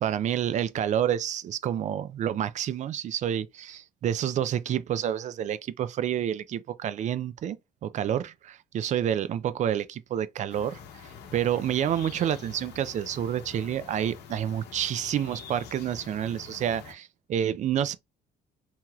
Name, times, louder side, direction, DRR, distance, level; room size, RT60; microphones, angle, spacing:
voice 1, 0.0-10.8 11.3-18.0, right 10 dB, 45° right, 0.4 m, -29 dB
sound 1, 10.5-16.9, left 6 dB, 75° left, 0.8 m, -46 dB
2.9 x 2.8 x 2.3 m
cardioid pair, 110°, 17 cm